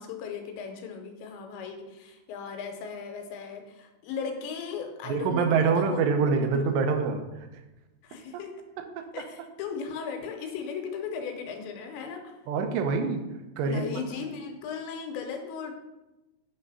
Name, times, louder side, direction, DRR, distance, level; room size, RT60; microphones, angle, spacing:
voice 1, 0.0-6.1 6.4-6.7 8.0-8.6 9.1-12.4 13.6-15.7, left 6 dB, 85° left, 4 dB, 3.2 m, -37 dB
voice 2, 5.1-7.2 9.0-9.1 12.5-13.2 13.6-13.8, right 5 dB, 80° right, 6 dB, 2.8 m, -25 dB
9.5 x 3.4 x 5.4 m, 1.0 s
omnidirectional pair, 5.0 m